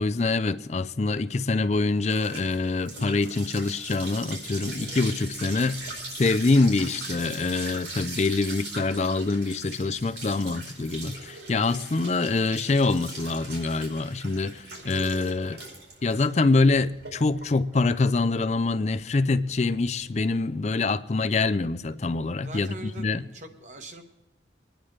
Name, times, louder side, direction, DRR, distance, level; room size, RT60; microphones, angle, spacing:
voice 1, 0.0-15.6 16.0-23.2, left 3 dB, 40° left, 0.4 m, -25 dB
sound 1, 1.1-20.1, right 2 dB, 80° right, 4.7 m, -40 dB
voice 2, 22.4-24.0, right 1 dB, 40° right, 1.2 m, -42 dB
23.5 x 10.5 x 3.2 m
head